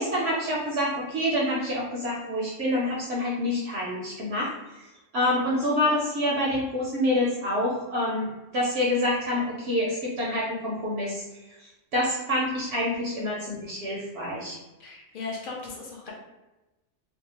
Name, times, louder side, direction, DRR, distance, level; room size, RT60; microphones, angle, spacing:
voice 1, 0.0-4.5 5.1-8.3 8.5-11.2 11.9-14.6, left 1 dB, 65° right, -4 dB, 0.7 m, -27 dB
voice 2, 14.8-16.1, left 4 dB, 55° left, -3 dB, 0.6 m, -37 dB
2.6 x 2.0 x 2.8 m, 1.1 s
omnidirectional pair, 1.5 m